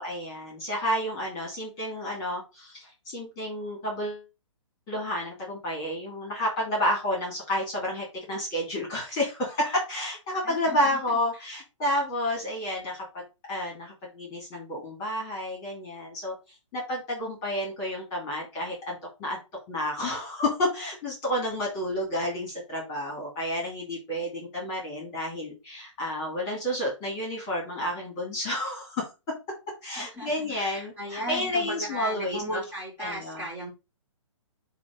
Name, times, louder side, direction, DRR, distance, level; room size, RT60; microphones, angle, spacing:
voice 1, 0.0-4.2 4.9-16.3 16.7-19.4 19.7-29.1 29.8-32.6 33.0-33.4, left 1 dB, 20° left, -2 dB, 2.8 m, -30 dB
voice 2, 10.4-11.0 30.0-33.7, equal, 10° right, -3 dB, 3.4 m, -36 dB
8.4 x 3.0 x 5.3 m, 0.27 s
hypercardioid pair, 165°, 17 cm